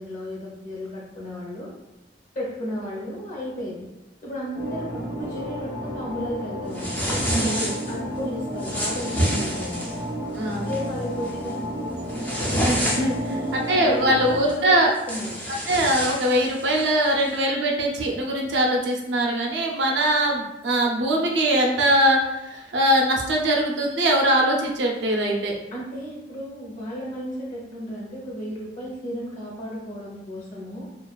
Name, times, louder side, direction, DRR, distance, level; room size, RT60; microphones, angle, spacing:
voice 1, 0.0-1.7 2.3-3.9 4.2-7.0 7.4-9.9 10.6-11.6 13.1-14.8 15.1-15.3 25.7-30.8, equal, 45° left, -4 dB, 0.8 m, -34 dB
sound 1, 4.5-14.4, equal, 85° left, 0.9 m, -32 dB
sound 2, 6.7-8.0 8.6-10.0 10.5-10.8 11.2-11.5 11.9-13.3 14.5-14.6 14.9-16.9, equal, 10° left, 0.3 m, -28 dB
voice 2, 7.3-7.7 10.3-10.7 12.6-13.2 13.5-14.9 15.7-25.5, right 1 dB, 75° right, 0 dB, 0.5 m, -22 dB
2.4 x 2.3 x 2.2 m, 0.93 s
head